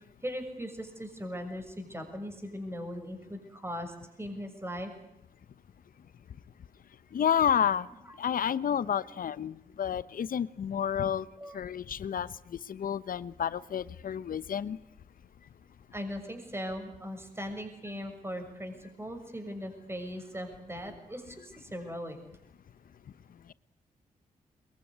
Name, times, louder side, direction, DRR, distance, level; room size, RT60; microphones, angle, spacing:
voice 1, 0.2-4.9 8.1-8.2 9.1-9.2 11.4-11.6 15.9-22.2, equal, 15° right, 5 dB, 6.6 m, -39 dB
voice 2, 7.1-7.9 8.2-11.3 11.5-12.3 12.7-14.8, left 8 dB, 70° left, 17 dB, 1.0 m, -30 dB
22.5 x 22.0 x 10.0 m, 0.75 s
cardioid pair, 60°, 15 cm